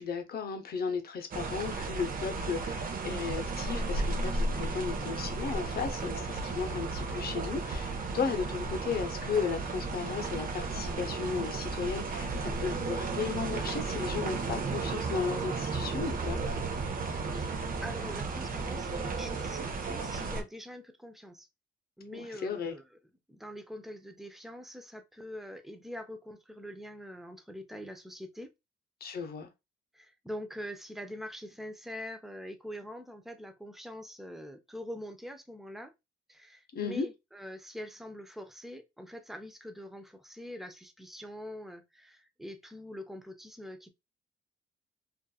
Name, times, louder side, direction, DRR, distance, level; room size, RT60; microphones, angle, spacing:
voice 1, 0.0-16.4 22.1-22.7 29.0-29.5 36.7-37.1, left 5 dB, 50° left, 0.7 m, -35 dB
sound 1, 1.3-20.4, right 3 dB, 45° right, 0.6 m, -34 dB
voice 2, 17.3-21.5 22.0-23.0 23.3-28.5 29.9-35.9 36.3-43.9, equal, ahead, 0.5 m, -44 dB
2.7 x 2.5 x 2.3 m
cardioid pair, 90°, 20 cm